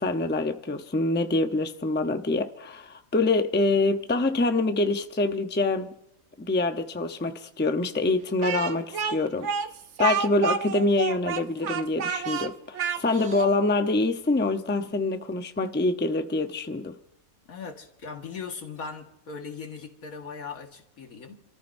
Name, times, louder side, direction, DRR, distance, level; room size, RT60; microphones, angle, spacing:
voice 1, 0.0-5.9 6.4-9.5 10.0-17.0, left 2 dB, 10° left, 0.6 m, -25 dB
Speech, 8.4-13.5, right 7 dB, 60° right, 1.0 m, -30 dB
voice 2, 17.4-21.4, left 5 dB, 80° left, 2.1 m, -39 dB
28.0 x 14.5 x 2.6 m
omnidirectional pair, 1.5 m